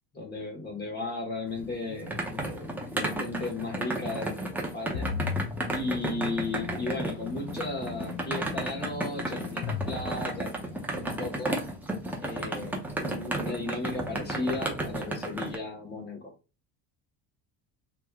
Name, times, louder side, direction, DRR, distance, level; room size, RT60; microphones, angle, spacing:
voice 1, 0.1-5.1 5.7-11.6 12.2-16.3, left 2 dB, 20° left, 1 dB, 1.2 m, -35 dB
sound 1, 1.5-15.6, right 1 dB, 5° right, 0.5 m, -33 dB
sound 2, 4.9-10.9, left 7 dB, 85° left, 0.8 m, -38 dB
3.5 x 3.0 x 2.2 m, 0.31 s
cardioid pair, 160°, 44 cm